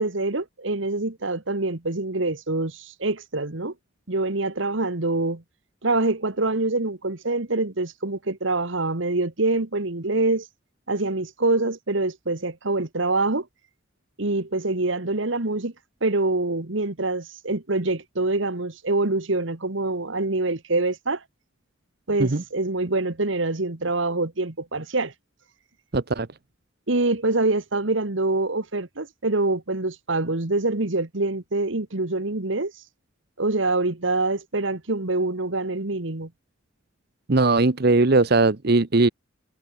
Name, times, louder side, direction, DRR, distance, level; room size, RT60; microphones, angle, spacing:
voice 1, 0.0-3.7 4.1-5.4 5.8-10.4 10.9-13.4 14.2-15.7 16.0-21.2 22.1-25.1 26.9-32.7 33.4-36.3, right 2 dB, 65° right, 1.6 m, -25 dB
voice 2, 25.9-26.3 37.3-39.1, right 3 dB, 50° right, 0.9 m, -19 dB
head